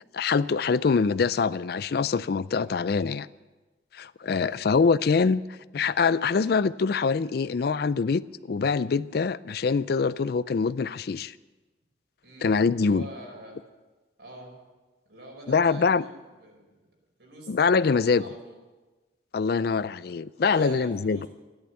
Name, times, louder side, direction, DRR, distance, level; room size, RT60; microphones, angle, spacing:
voice 1, 0.1-3.3 3.9-5.4 5.7-11.3 12.4-13.1 15.5-16.0 17.5-18.2 19.3-21.3, left 5 dB, 55° left, 0.4 m, -24 dB
voice 2, 4.2-4.7 12.2-13.6 14.2-14.5 15.0-16.7 17.2-18.6 20.4-21.3, right 1 dB, 65° right, 5.0 m, -45 dB
14.0 x 11.0 x 8.2 m
head